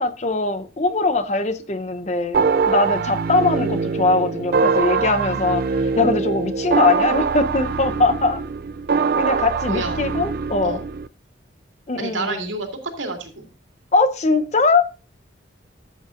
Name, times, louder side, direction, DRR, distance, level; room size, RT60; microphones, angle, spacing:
voice 1, 0.0-5.6 6.0-8.4 9.2-10.8 11.9-12.4 13.9-14.8, left 3 dB, 35° left, 0.8 m, -21 dB
sound 1, 2.3-11.1, right 5 dB, 50° right, 0.4 m, -23 dB
voice 2, 9.7-10.0 10.6-10.8 12.0-12.7 13.0-13.5, right 2 dB, 90° right, 2.4 m, -28 dB
14.0 x 8.3 x 2.5 m
head